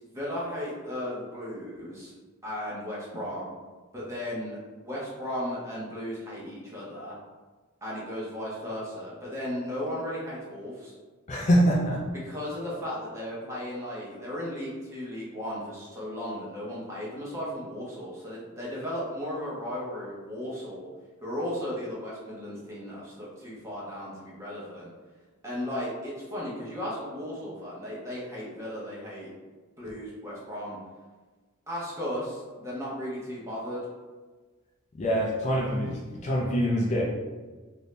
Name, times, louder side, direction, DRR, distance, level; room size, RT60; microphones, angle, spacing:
voice 1, 0.0-2.1 2.4-3.5 3.9-7.1 7.8-10.9 12.2-20.9 21.2-24.9 25.4-29.3 29.8-30.8 31.7-33.8, equal, 15° right, -6 dB, 0.8 m, -35 dB
voice 2, 11.3-12.0 34.9-37.0, equal, 35° left, -3 dB, 0.4 m, -24 dB
3.1 x 2.6 x 3.2 m, 1.3 s
head